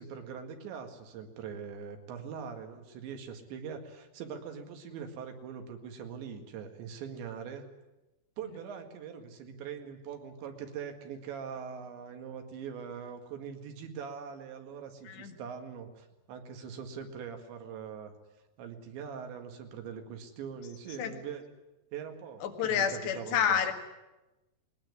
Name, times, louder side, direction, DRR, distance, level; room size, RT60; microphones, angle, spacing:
voice 1, 0.0-7.7 8.4-18.1 18.6-21.5 21.9-23.7, right 7 dB, 90° right, 5 dB, 4.3 m, -42 dB
voice 2, 15.1-15.4 21.0-21.1 22.4-23.7, left 8 dB, 75° left, 5 dB, 4.0 m, -29 dB
20.5 x 19.0 x 9.8 m, 1.0 s
omnidirectional pair, 5.0 m